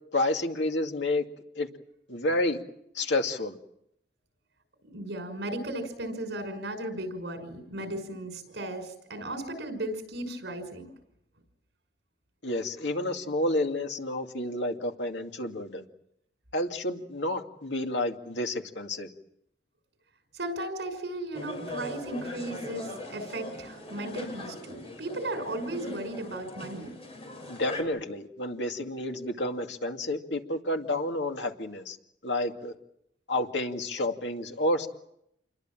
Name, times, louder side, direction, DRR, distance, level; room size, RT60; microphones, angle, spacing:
voice 1, 0.1-1.2 1.6-1.7 2.1-2.6 2.9-3.6 12.4-15.8 16.5-19.1 27.5-32.0 32.2-32.7 33.3-34.9, left 1 dB, 75° left, 4 dB, 2.4 m, -30 dB
voice 2, 4.9-10.9 20.3-26.9, right 1 dB, 70° right, 6 dB, 5.9 m, -36 dB
sound 1, 21.3-27.8, left 1 dB, 35° left, 6.6 m, -40 dB
28.5 x 22.0 x 7.5 m, 0.78 s
head